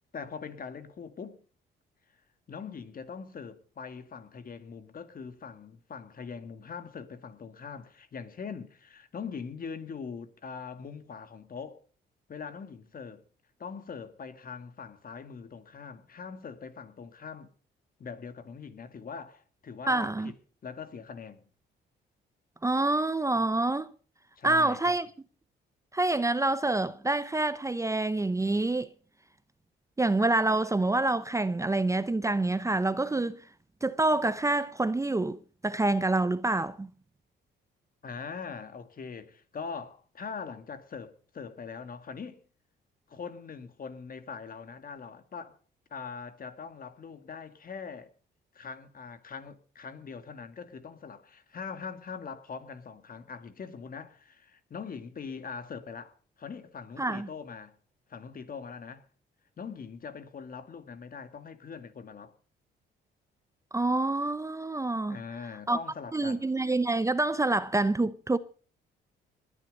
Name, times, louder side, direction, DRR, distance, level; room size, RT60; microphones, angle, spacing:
voice 1, 0.1-1.4 2.5-11.8 12.3-13.2 13.6-17.5 18.0-20.4 20.6-21.4 24.4-25.0 38.0-42.4 43.1-45.6 45.9-48.1 48.5-57.8 58.1-59.1 59.6-62.3 65.1-66.5, left 5 dB, 45° left, 2.0 m, -42 dB
voice 2, 19.9-20.3 22.6-23.9 24.4-25.1 25.9-28.9 30.0-33.4 33.8-36.9 57.0-57.3 63.7-65.2 65.7-65.8 66.1-68.4, right 2 dB, 15° right, 0.7 m, -27 dB
20.5 x 10.0 x 5.2 m
cardioid pair, 90°, 20 cm